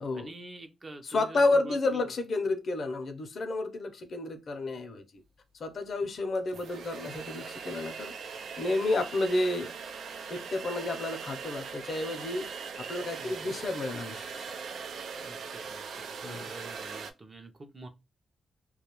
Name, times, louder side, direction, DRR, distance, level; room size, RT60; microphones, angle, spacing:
voice 1, 0.1-2.1 13.2-13.6 15.2-17.9, right 2 dB, 30° right, 0.5 m, -47 dB
voice 2, 1.0-5.0 5.6-9.7 10.3-12.5 12.8-14.3 16.2-16.5, left 2 dB, 50° left, 0.6 m, -31 dB
sound 1, 5.8-5.9 6.4-17.1, right 5 dB, 75° right, 0.4 m, -40 dB
2.3 x 2.2 x 2.9 m
cardioid pair, 120°, 0 cm